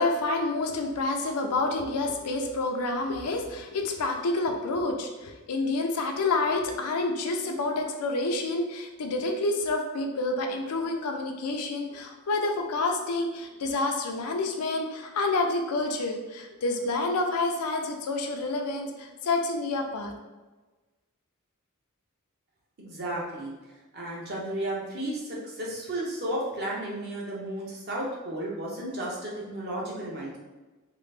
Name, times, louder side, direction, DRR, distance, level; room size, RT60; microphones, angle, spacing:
voice 1, 0.0-20.2, left 2 dB, 85° left, 3 dB, 0.5 m, -28 dB
voice 2, 22.8-23.5 23.9-30.4, right 1 dB, 50° right, -4 dB, 0.9 m, -33 dB
3.0 x 2.4 x 3.3 m, 1.2 s
head